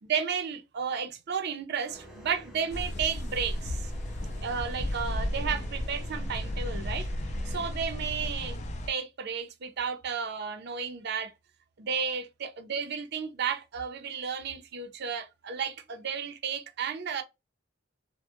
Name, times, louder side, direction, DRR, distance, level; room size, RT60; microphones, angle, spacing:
voice 1, 0.0-3.9 4.4-7.1 7.5-11.3 11.8-17.2, right 6 dB, 55° right, 0.5 m, -33 dB
sound 1, 1.9-7.7, equal, ahead, 0.7 m, -49 dB
sound 2, 2.7-8.9, left 1 dB, 35° left, 0.3 m, -34 dB
2.2 x 2.1 x 2.8 m
head